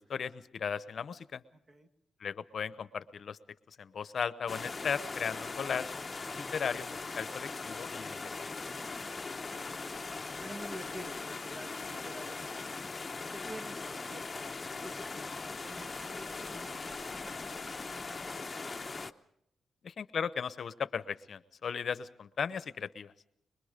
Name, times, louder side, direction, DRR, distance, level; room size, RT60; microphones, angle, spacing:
voice 1, 0.0-1.4 2.2-3.4 3.7-5.9 6.3-8.3 19.8-23.1, left 7 dB, 60° left, 15 dB, 0.8 m, -36 dB
voice 2, 1.5-1.9 9.5-9.8 10.4-12.8 13.3-19.0, right 1 dB, 35° right, 5 dB, 2.2 m, -50 dB
sound 1, 4.5-19.1, left 4 dB, 30° left, 0.8 m, -40 dB
24.5 x 21.5 x 5.1 m, 0.75 s
cardioid pair, 75°, 0 cm